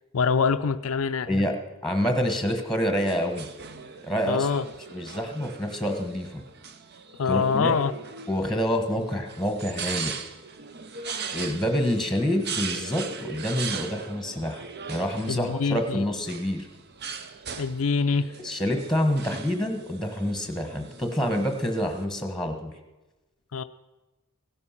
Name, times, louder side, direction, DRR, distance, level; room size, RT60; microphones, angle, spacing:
voice 1, 0.1-1.3 4.3-4.6 7.2-7.9 15.3-16.0 17.6-18.3 23.5-23.6, left 5 dB, 80° left, 10 dB, 0.5 m, -24 dB
voice 2, 1.8-3.5 4.0-4.5 4.9-6.4 7.3-7.8 8.3-10.1 11.2-14.6 14.9-16.7 18.4-22.7, equal, ahead, 5 dB, 1.3 m, -27 dB
sound 1, 2.9-22.0, right 6 dB, 50° right, 0.8 m, -39 dB
16.5 x 11.0 x 5.8 m, 1.1 s
head